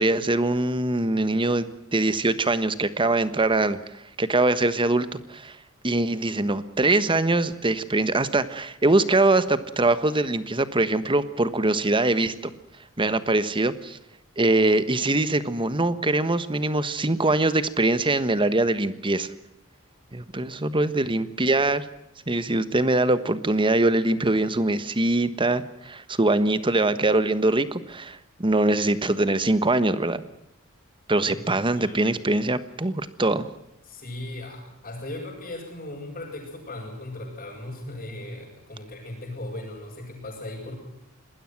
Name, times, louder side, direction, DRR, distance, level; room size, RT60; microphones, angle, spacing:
voice 1, 0.0-5.6 5.8-12.5 13.0-14.0 14.4-19.3 20.1-21.9 22.3-30.2 31.1-33.5, right 2 dB, 25° right, 13 dB, 1.3 m, -23 dB
voice 2, 31.2-32.0 33.9-40.7, left 1 dB, 35° left, -7 dB, 8.0 m, -37 dB
26.5 x 20.5 x 6.0 m, 0.84 s
head